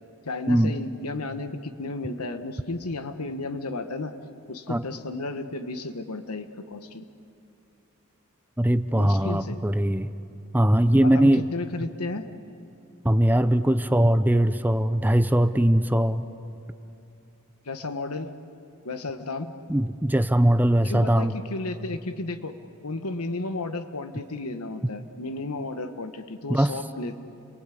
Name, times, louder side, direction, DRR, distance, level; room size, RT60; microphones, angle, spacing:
voice 1, 0.2-4.1 4.5-7.1 8.9-9.6 11.0-12.2 17.6-18.3 18.8-19.5 20.8-22.5 22.8-27.2, left 2 dB, 80° left, 7 dB, 1.4 m, -33 dB
voice 2, 8.6-10.1 10.5-11.4 13.0-16.2 19.7-21.3 26.5-26.7, right 1 dB, 10° right, 11 dB, 0.6 m, -21 dB
30.0 x 22.0 x 8.5 m, 2.7 s
head